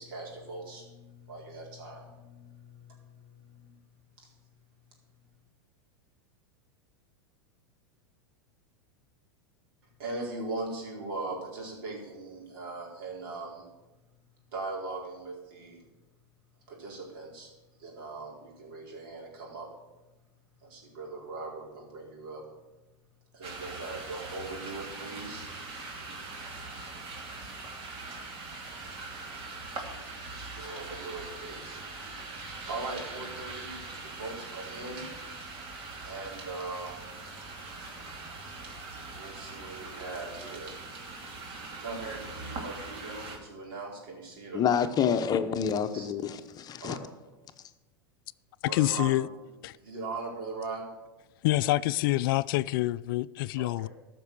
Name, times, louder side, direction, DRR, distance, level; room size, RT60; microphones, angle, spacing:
voice 1, 0.0-3.8 4.2-4.3 10.0-13.7 14.5-15.8 16.7-17.5 17.8-19.7 20.6-22.4 23.3-25.5 26.4-26.6 30.5-31.8 32.7-35.0 36.0-37.1 39.1-40.8 41.8-44.8 45.9-46.1 46.8-47.0 48.7-49.2 49.8-50.8 53.6-53.9, right 3 dB, 70° right, 4.4 m, -40 dB
sound 1, 23.4-43.4, right 3 dB, 45° right, 2.6 m, -42 dB
voice 2, 44.5-47.0, left 7 dB, 30° left, 0.9 m, -28 dB
voice 3, 48.7-49.3 49.6-49.8 51.4-53.9, left 17 dB, 65° left, 0.4 m, -26 dB
14.0 x 6.1 x 6.8 m
hypercardioid pair, 105°, 12 cm